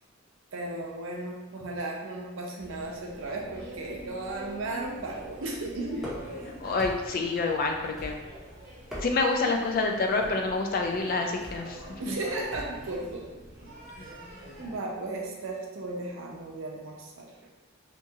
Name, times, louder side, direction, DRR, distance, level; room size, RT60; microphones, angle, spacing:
voice 1, 0.5-6.1 12.0-13.3 13.9-14.1 14.6-17.3, right 2 dB, 80° right, -1 dB, 0.5 m, -35 dB
sound 1, 2.6-14.8, right 1 dB, 50° right, 0.9 m, -45 dB
sound 2, 6.0-6.4 6.8-7.3 8.0-8.4 8.8-9.4 10.2-10.5 11.4-11.7 12.5-12.8, equal, ahead, 0.6 m, -41 dB
voice 2, 6.6-8.2 9.0-11.8, left 3 dB, 45° left, 3 dB, 0.3 m, -27 dB
2.9 x 2.3 x 2.7 m, 1.2 s
head